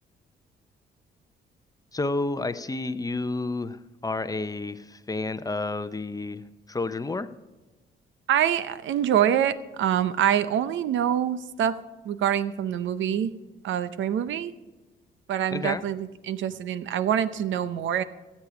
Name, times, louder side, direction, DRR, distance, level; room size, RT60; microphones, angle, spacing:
voice 1, 1.9-7.3 15.5-15.8, left 2 dB, 20° left, 12 dB, 0.7 m, -30 dB
voice 2, 8.3-11.8 12.0-13.3 13.6-14.5 15.3-18.0, right 10 dB, 75° right, 15 dB, 0.7 m, -25 dB
16.0 x 8.5 x 4.9 m, 1.2 s
cardioid pair, 90°, 20 cm